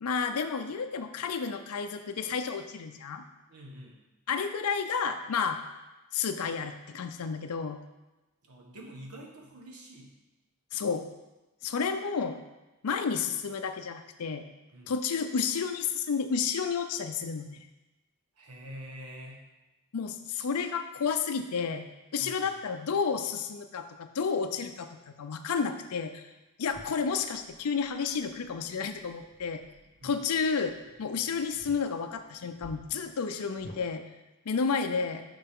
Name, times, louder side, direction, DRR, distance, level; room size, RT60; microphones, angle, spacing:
voice 1, 0.0-3.2 4.3-5.6 6.1-7.8 10.7-11.1 11.6-12.4 12.8-14.4 14.9-17.7 19.9-21.8 22.1-26.2 26.6-29.6 30.0-34.0 34.5-35.2, left 5 dB, 80° left, 7 dB, 0.5 m, -31 dB
voice 2, 3.5-4.0 8.4-10.1 14.7-14.9 18.4-19.4 22.2-22.5 30.0-30.2, equal, 90° right, -1 dB, 1.4 m, -46 dB
sound 1, 26.7-33.8, left 1 dB, 40° left, 1.5 m, -54 dB
6.9 x 5.7 x 3.6 m, 1.1 s
head